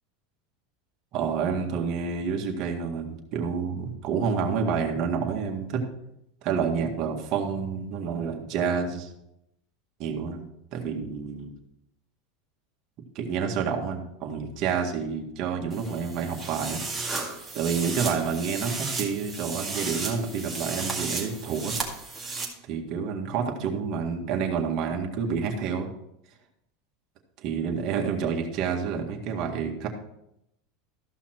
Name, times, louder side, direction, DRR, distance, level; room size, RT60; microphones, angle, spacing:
voice 1, 1.1-5.9 6.4-9.1 10.0-11.5 13.2-16.8 17.5-21.7 22.6-25.9 27.4-29.9, right 6 dB, 50° right, 2 dB, 1.8 m, -29 dB
sound 1, 15.7-22.5, right 4 dB, 5° right, 2.1 m, -34 dB
14.0 x 5.7 x 4.5 m, 0.81 s
supercardioid pair, 135°, 0 cm